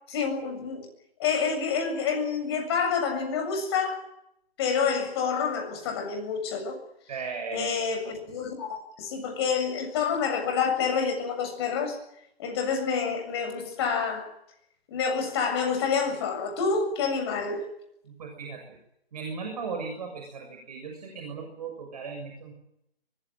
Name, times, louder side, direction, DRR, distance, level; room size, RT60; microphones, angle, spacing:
voice 1, 0.1-0.9 1.2-4.0 4.6-6.8 7.5-12.0 12.4-14.3 14.9-17.6, left 6 dB, 25° left, 7.4 m, -28 dB
voice 2, 7.1-7.7 18.0-18.8 19.1-22.5, right 5 dB, 40° right, 6.7 m, -37 dB
24.0 x 20.5 x 9.2 m
figure-of-eight pair, 155°, 31 cm